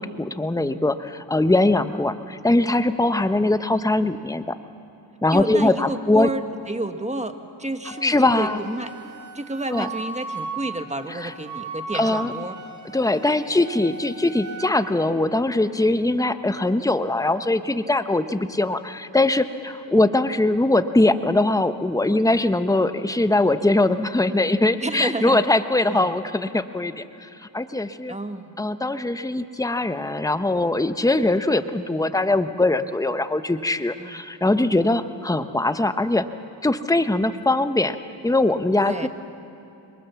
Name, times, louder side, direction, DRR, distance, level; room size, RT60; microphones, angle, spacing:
voice 1, 0.0-4.6 5.2-6.3 8.0-8.6 9.7-9.9 11.2-11.3 11.9-12.3 12.9-28.2 28.6-36.3 36.6-38.0 38.2-39.1, left 2 dB, 10° left, 10 dB, 1.0 m, -21 dB
voice 2, 5.3-8.9 9.3-12.6 24.8-25.4 25.9-26.1 28.1-28.6 31.0-31.1 34.0-34.2 38.7-39.1, right 2 dB, 15° right, 7 dB, 1.7 m, -30 dB
Wind instrument woodwind instrument, 7.8-14.7, right 3 dB, 40° right, 2.0 m, -37 dB
26.5 x 22.5 x 7.1 m, 2.7 s
cardioid pair, 60°, 46 cm